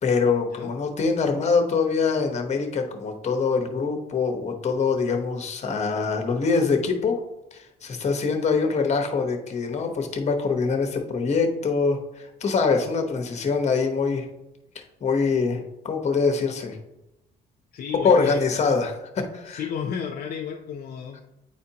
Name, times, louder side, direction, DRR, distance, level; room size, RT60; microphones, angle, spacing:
voice 1, 0.0-7.2 7.5-14.3 14.7-16.8 18.0-19.6, left 4 dB, 40° left, 5 dB, 1.0 m, -24 dB
voice 2, 17.7-18.4 19.4-21.2, left 7 dB, 60° left, 2 dB, 0.6 m, -32 dB
8.9 x 4.2 x 2.8 m, 0.91 s
cardioid pair, 115°, 17 cm